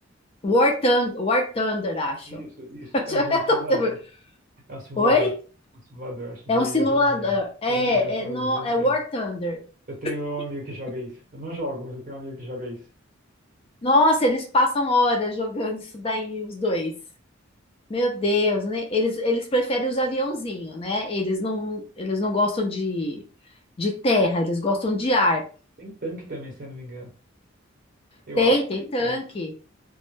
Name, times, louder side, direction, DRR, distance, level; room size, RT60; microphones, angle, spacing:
voice 1, 0.4-2.4 2.9-3.9 5.0-5.3 6.5-9.6 13.8-16.9 17.9-23.2 23.8-25.4 28.4-29.5, left 1 dB, 30° left, 2 dB, 0.4 m, -23 dB
voice 2, 2.3-3.9 4.7-5.3 5.9-7.4 7.7-8.9 9.9-12.8 25.8-27.1 28.3-28.5 28.8-29.2, right 1 dB, 45° right, -1 dB, 1.0 m, -35 dB
2.2 x 2.1 x 3.0 m, 0.38 s
head